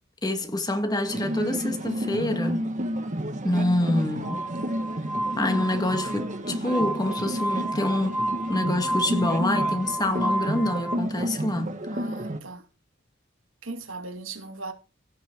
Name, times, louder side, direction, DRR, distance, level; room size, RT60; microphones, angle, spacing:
voice 1, 0.2-2.7 3.4-4.5 5.4-8.2 8.5-11.7, left 1 dB, 20° left, 1.6 m, -26 dB
sound 1, 1.1-12.4, equal, 40° right, 1.6 m, -31 dB
Glass, 4.2-11.0, right 1 dB, 5° right, 1.7 m, -31 dB
voice 2, 11.9-12.6 13.6-14.7, right 3 dB, 75° right, 2.4 m, -38 dB
16.0 x 6.1 x 4.5 m
head